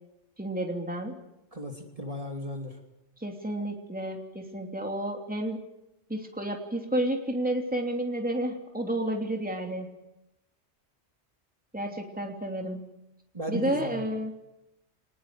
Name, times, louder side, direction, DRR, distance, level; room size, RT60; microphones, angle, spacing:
voice 1, 0.4-1.2 3.2-5.6 6.1-9.9 11.7-12.8 13.5-14.3, right 1 dB, 5° right, 2 dB, 3.0 m, -31 dB
voice 2, 1.5-2.8 13.3-14.0, equal, 30° right, 3 dB, 2.9 m, -35 dB
25.0 x 20.0 x 7.7 m, 0.89 s
omnidirectional pair, 1.2 m